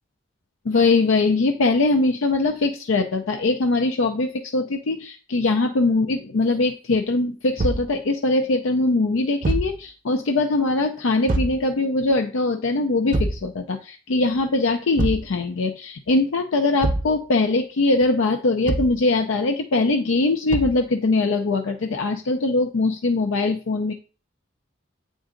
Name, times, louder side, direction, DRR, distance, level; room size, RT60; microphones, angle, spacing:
voice 1, 0.7-23.9, left 3 dB, 85° left, 5 dB, 0.5 m, -22 dB
Thump thud, 7.6-7.9 9.4-9.8 11.3-11.6 13.1-13.5 15.0-15.3 16.8-17.2 18.7-19.0 20.5-20.8, right 1 dB, 45° right, 0.6 m, -24 dB
8.0 x 3.8 x 3.8 m, 0.36 s
head